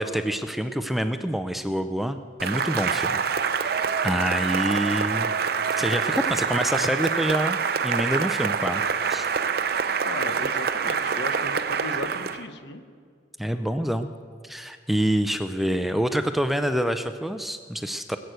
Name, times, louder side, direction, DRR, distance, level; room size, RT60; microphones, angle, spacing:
voice 1, 0.0-3.2 3.6-3.7 4.0-5.3 5.8-8.8 9.1-9.3 13.4-14.1 14.4-18.2, equal, ahead, 8 dB, 0.4 m, -26 dB
Cheering / Applause, 2.4-12.4, right 6 dB, 55° right, 0.6 m, -26 dB
voice 2, 10.0-12.8, left 2 dB, 65° left, 9 dB, 1.0 m, -36 dB
20.0 x 8.2 x 7.8 m, 2.1 s
head